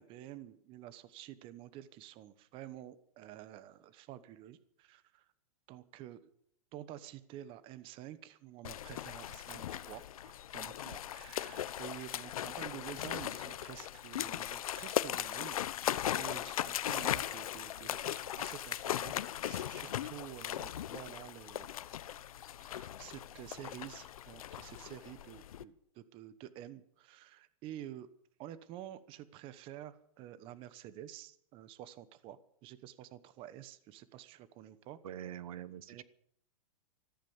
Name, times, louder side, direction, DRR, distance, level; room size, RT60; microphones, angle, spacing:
voice 1, 0.0-5.2 5.7-6.2 6.7-15.6 16.1-21.7 22.6-28.1 28.4-35.0 35.9-36.0, right 12 dB, 30° right, 15 dB, 1.0 m, -49 dB
sound 1, 8.6-25.6, left 11 dB, 75° left, 0.8 m, -38 dB
voice 2, 35.0-36.0, right 10 dB, 75° right, 18 dB, 0.9 m, -44 dB
14.0 x 14.0 x 7.1 m, 0.67 s
hypercardioid pair, 155°, 18 cm